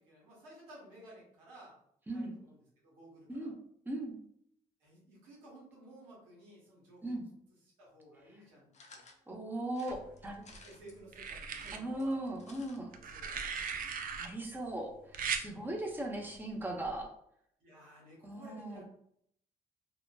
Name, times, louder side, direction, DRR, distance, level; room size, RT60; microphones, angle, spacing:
voice 1, 0.0-1.8 2.1-3.5 4.8-7.2 7.8-9.0 10.4-12.2 12.8-14.1 15.4-15.7 17.6-18.8, right 1 dB, 90° right, -6 dB, 0.9 m, -56 dB
voice 2, 3.8-4.2 7.0-7.2 9.3-10.4 11.7-12.9 14.2-17.1 18.2-18.8, right 1 dB, 10° right, 0 dB, 0.7 m, -38 dB
sound 1, 8.7-9.2 9.7-11.0 11.4-12.8 13.1-13.2 13.4-13.5, left 3 dB, 40° left, 0.6 m, -57 dB
sound 2, 9.9-10.6 11.1-11.8 12.9-14.3 15.1-15.5 16.8-17.0, right 6 dB, 50° right, 0.4 m, -38 dB
2.9 x 2.1 x 2.2 m, 0.70 s
hypercardioid pair, 45°, 18 cm